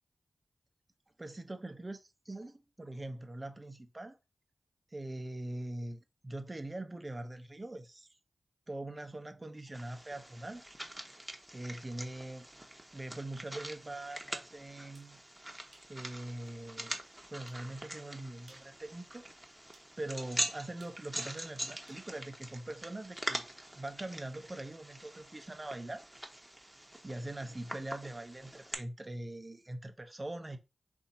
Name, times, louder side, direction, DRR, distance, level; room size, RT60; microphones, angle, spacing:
voice 1, 1.2-4.2 4.9-8.1 8.7-10.6 11.5-12.5 12.9-15.2 15.9-17.0 17.3-19.6 20.0-23.5 23.8-26.1 27.0-30.6, right 1 dB, 30° right, 0.7 m, -42 dB
sound 1, 9.7-28.7, right 1 dB, 15° right, 1.0 m, -44 dB
sound 2, 14.9-15.1 15.7-15.9 16.5-16.6 17.5-17.7 18.4-18.8 19.7-19.9 20.8-22.1, right 3 dB, 80° right, 1.1 m, -62 dB
4.0 x 2.7 x 4.1 m
cardioid pair, 50°, 0 cm